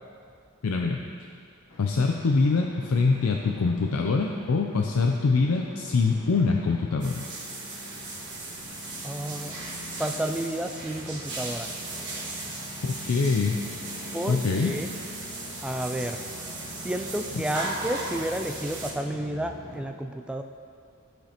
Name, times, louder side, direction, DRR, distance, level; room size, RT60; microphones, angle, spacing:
voice 1, 0.6-1.0 1.8-7.2 12.8-13.6 14.3-14.7, left 4 dB, 85° left, 2 dB, 0.5 m, -24 dB
sound 1, 1.7-19.9, left 2 dB, 65° left, 1.4 m, -44 dB
sound 2, 7.0-18.9, right 2 dB, 55° right, 1.6 m, -37 dB
voice 2, 9.0-9.7 10.0-11.7 14.1-14.9 15.6-16.2 16.7-20.4, right 1 dB, 5° right, 5 dB, 0.3 m, -31 dB
sound 3, 9.4-19.4, right 1 dB, 25° right, 1.6 m, -51 dB
15.0 x 5.1 x 2.9 m, 2.2 s
head